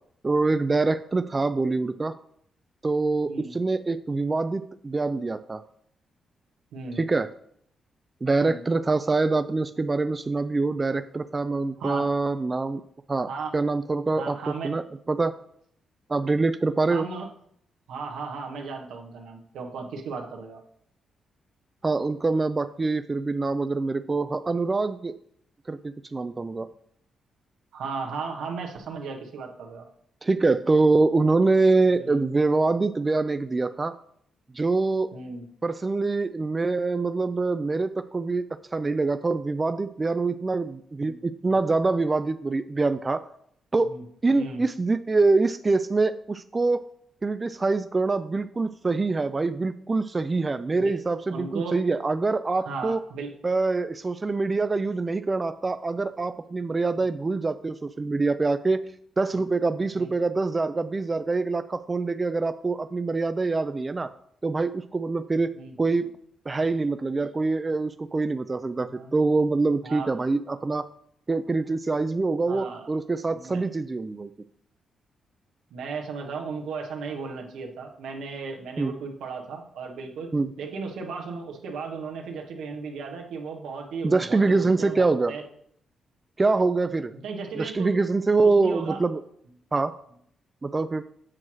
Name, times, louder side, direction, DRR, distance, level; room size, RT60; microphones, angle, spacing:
voice 1, 0.2-2.1 2.8-5.6 7.0-7.3 8.2-12.8 13.1-15.3 16.1-17.1 21.8-25.2 25.7-26.7 30.2-33.9 34.5-35.1 35.6-43.2 43.7-44.0 44.2-46.9 47.2-53.0 53.4-58.8 59.2-64.1 64.4-66.1 66.5-70.9 71.3-74.3 78.8-78.9 80.3-80.5 84.0-85.3 86.4-87.1 87.6-89.2 89.7-89.9 90.6-91.0, right 3 dB, 30° right, 11 dB, 0.3 m, -25 dB
voice 2, 6.7-7.0 8.4-8.6 11.8-12.1 13.3-13.5 14.2-14.7 16.9-17.3 17.9-20.6 27.7-29.9 31.9-32.2 35.1-35.5 41.0-41.2 43.8-44.0 44.3-44.6 50.7-50.9 51.3-51.8 52.6-53.3 57.0-57.1 59.3-59.4 59.9-60.1 65.5-65.8 68.8-69.1 69.8-70.1 72.5-72.9 73.3-73.6 75.7-80.3 80.6-85.4 87.1-87.9 88.4-89.0, right 4 dB, 85° right, 2 dB, 1.1 m, -36 dB
7.7 x 3.1 x 6.1 m, 0.67 s
cardioid pair, 70°, 0 cm